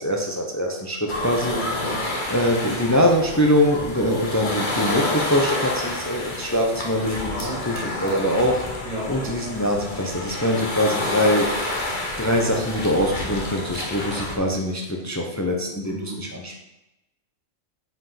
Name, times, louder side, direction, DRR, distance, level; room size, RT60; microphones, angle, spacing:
voice 1, 0.0-1.5 2.3-8.6 9.1-11.5 12.2-16.6, equal, 15° left, 1 dB, 0.7 m, -23 dB
sound 1, 1.1-14.4, left 2 dB, 40° left, 1.4 m, -29 dB
voice 2, 1.4-2.0 7.3-7.6 8.8-9.3 14.1-14.3 15.8-16.2, right 1 dB, 30° right, -4 dB, 2.3 m, -33 dB
5.6 x 5.0 x 5.7 m, 0.94 s
omnidirectional pair, 1.2 m